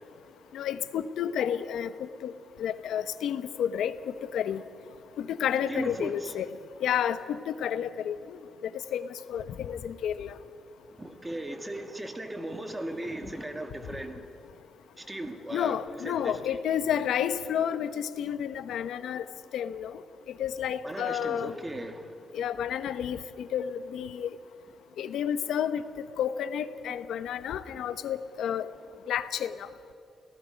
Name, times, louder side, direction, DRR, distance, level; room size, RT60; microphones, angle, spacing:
voice 1, 0.5-2.3 2.6-3.9 4.3-4.6 5.2-6.5 6.8-8.4 8.9-10.3 15.5-19.2 19.5-19.9 20.4-21.5 22.3-24.3 25.0-25.8 26.2-28.7 29.1-29.7, left 9 dB, 90° left, 12 dB, 1.0 m, -30 dB
voice 2, 5.7-6.4 11.0-14.2 15.0-16.6 20.8-22.1 27.7-27.8, right 1 dB, 15° right, 6 dB, 2.1 m, -37 dB
30.0 x 18.5 x 5.3 m, 2.7 s
cardioid pair, 130°, 0 cm